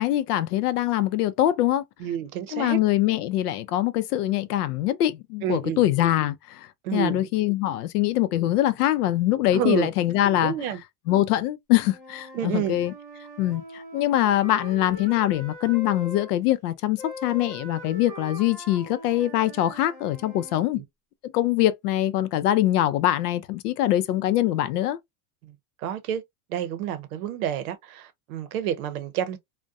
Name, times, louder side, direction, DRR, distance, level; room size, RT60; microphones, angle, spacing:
voice 1, 0.0-1.8 2.5-10.5 11.1-12.9 13.4-20.8 21.3-25.0, left 13 dB, 75° left, 0.5 m, -23 dB
voice 2, 2.0-2.8 5.4-5.9 6.8-7.3 9.5-9.9 10.4-10.8 12.3-12.7 20.7-20.8 25.8-26.2 26.5-29.4, right 10 dB, 65° right, 0.7 m, -29 dB
Wind instrument woodwind instrument, 11.8-16.3 17.0-20.6, left 1 dB, 10° right, 0.4 m, -41 dB
2.3 x 2.1 x 2.6 m
supercardioid pair, 175°, 46 cm